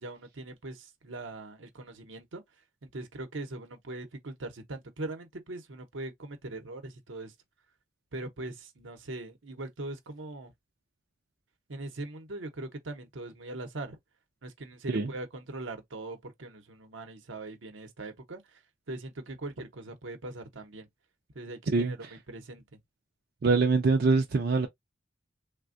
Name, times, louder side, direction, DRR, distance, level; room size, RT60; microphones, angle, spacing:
voice 1, 0.0-2.4 2.8-7.3 8.1-10.5 11.7-14.0 14.4-18.4 18.9-20.9 21.3-22.0 22.3-22.8, right 2 dB, 80° right, 0.8 m, -41 dB
voice 2, 21.7-22.1 23.4-24.7, right 4 dB, 50° right, 0.4 m, -24 dB
3.4 x 2.1 x 2.5 m
head